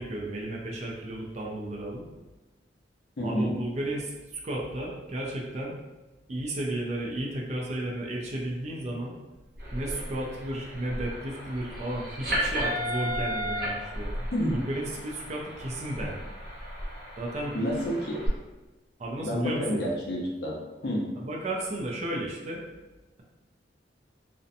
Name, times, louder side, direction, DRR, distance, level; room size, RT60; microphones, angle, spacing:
voice 1, 0.0-2.0 3.2-5.7 6.3-9.1 9.7-16.2 17.2-17.6 19.0-19.8 21.2-22.6, right 1 dB, 40° right, -2 dB, 0.4 m, -33 dB
voice 2, 3.2-3.5 14.3-14.6 17.5-18.2 19.2-20.6 20.8-21.1, equal, 65° left, -2 dB, 0.6 m, -29 dB
sound 1, 9.6-18.3, equal, 60° right, 0.8 m, -34 dB
2.6 x 2.1 x 2.5 m, 1.1 s
head